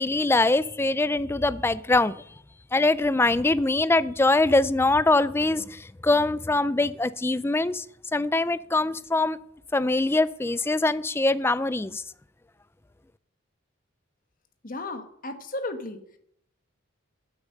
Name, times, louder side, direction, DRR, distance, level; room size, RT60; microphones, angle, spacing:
voice 1, 0.0-2.1 2.7-7.8 8.1-9.4 9.7-12.0, left 2 dB, 10° left, 17 dB, 0.3 m, -23 dB
voice 2, 14.6-16.0, left 2 dB, 40° left, 8 dB, 1.2 m, -34 dB
10.0 x 8.4 x 6.6 m, 0.70 s
head